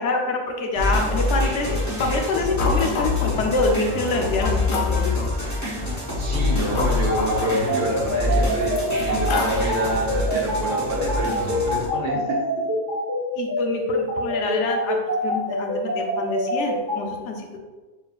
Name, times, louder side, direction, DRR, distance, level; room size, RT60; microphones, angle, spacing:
voice 1, 0.0-5.2 6.5-6.8 13.4-15.0 15.2-17.6, left 3 dB, 70° left, 2 dB, 1.0 m, -26 dB
sound 1, 0.8-11.9, left 2 dB, 15° left, 1.0 m, -25 dB
sound 2, 2.6-3.4 4.0-4.1 4.4-5.4 6.2-8.0 8.6-10.1, left 3 dB, 55° left, 0.6 m, -30 dB
voice 2, 6.2-12.7, right 2 dB, 80° right, -2 dB, 1.4 m, -28 dB
sound 3, 7.1-17.0, equal, 20° right, 1.0 m, -25 dB
4.8 x 4.3 x 2.4 m, 1.3 s
omnidirectional pair, 1.3 m